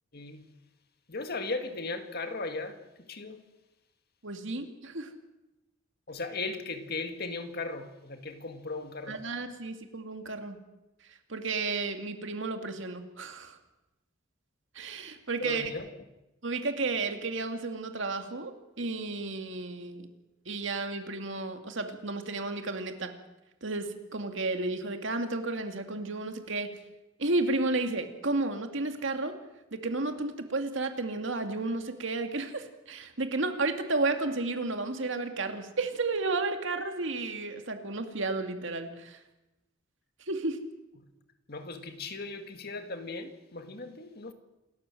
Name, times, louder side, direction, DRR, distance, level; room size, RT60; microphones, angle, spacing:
voice 1, 0.1-0.5 1.1-3.4 6.1-9.2 15.4-15.9 41.0-41.1 41.5-44.3, left 3 dB, 50° left, 2.0 m, -37 dB
voice 2, 4.2-5.1 9.1-10.6 11.3-13.6 14.7-15.7 16.4-18.5 18.8-20.1 20.5-23.1 23.6-26.7 27.2-29.3 29.7-39.2 40.3-40.6, right 3 dB, 65° right, 2.3 m, -32 dB
28.0 x 13.0 x 7.7 m
head